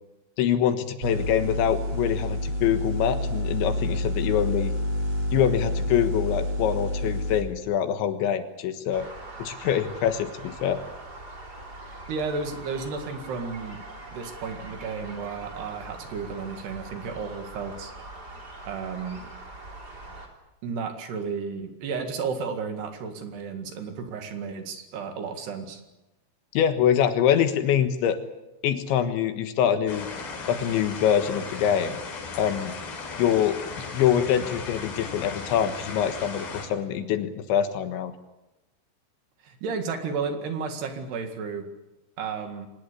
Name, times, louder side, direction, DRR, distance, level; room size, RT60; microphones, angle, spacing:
voice 1, 0.4-4.7 5.3-9.1 9.4-10.8 26.6-28.2 28.6-30.1 30.5-32.0 32.4-32.7 33.2-33.6 33.9-38.1, left 9 dB, 75° left, 8 dB, 3.6 m, -24 dB
sound 1, 1.0-7.4, left 1 dB, 45° right, 4.6 m, -28 dB
sound 2, 8.9-20.3, right 2 dB, 25° right, 3.5 m, -42 dB
voice 2, 12.1-13.8 14.1-17.9 18.7-19.2 20.6-25.8 39.4-41.7 42.2-42.7, right 5 dB, 65° right, 6 dB, 3.8 m, -33 dB
sound 3, 29.9-36.7, left 4 dB, 60° left, 5.4 m, -37 dB
24.0 x 19.5 x 8.5 m, 0.99 s
omnidirectional pair, 5.5 m